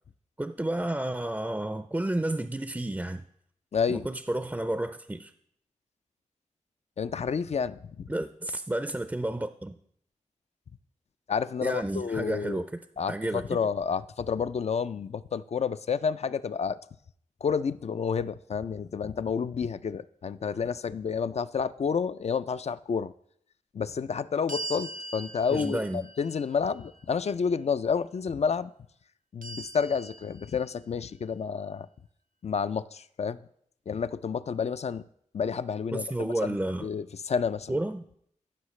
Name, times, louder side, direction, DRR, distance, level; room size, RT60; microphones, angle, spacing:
voice 1, 0.4-3.2 3.9-5.3 8.1-9.8 11.6-12.7 13.1-13.4 25.5-26.0 35.9-36.9 37.7-38.0, right 1 dB, 15° right, 0.5 m, -31 dB
voice 2, 3.7-4.1 7.0-8.1 11.3-12.6 13.0-16.8 17.4-23.1 23.7-28.7 29.3-31.9 32.4-33.4 33.9-35.0 35.3-36.6 36.8-37.8, left 6 dB, 55° left, 0.4 m, -30 dB
sound 1, 24.5-27.6 29.4-31.2, right 2 dB, 85° right, 0.6 m, -42 dB
14.5 x 5.7 x 3.2 m
cardioid pair, 45°, 13 cm